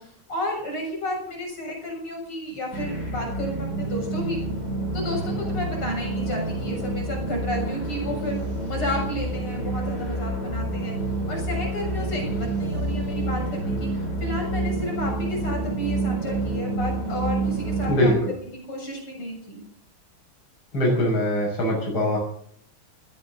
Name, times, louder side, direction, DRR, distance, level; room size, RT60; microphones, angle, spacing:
voice 1, 0.0-4.4 4.9-8.4 8.7-10.9 11.3-19.6, left 1 dB, 80° left, 1 dB, 8.2 m, -32 dB
sound 1, 2.7-18.1, right 2 dB, 50° left, 5.4 m, -28 dB
voice 2, 17.9-18.3 20.7-22.2, equal, 65° left, -1 dB, 7.2 m, -22 dB
20.0 x 17.5 x 4.0 m, 0.65 s
omnidirectional pair, 2.4 m